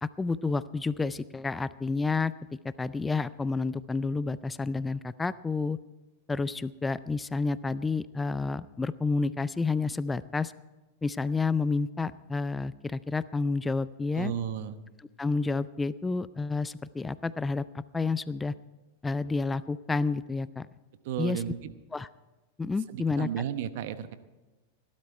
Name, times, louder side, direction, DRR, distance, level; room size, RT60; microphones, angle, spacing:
voice 1, 0.0-2.3 2.6-5.8 6.3-10.5 11.0-14.3 15.2-18.5 19.0-20.7 21.2-21.4 21.9-22.1 22.6-23.3, left 3 dB, 15° left, 17 dB, 0.4 m, -30 dB
voice 2, 14.1-14.8 21.0-21.7 22.9-24.1, right 9 dB, 60° right, 11 dB, 0.9 m, -33 dB
17.5 x 12.0 x 4.6 m, 1.2 s
hypercardioid pair, 105°, 0 cm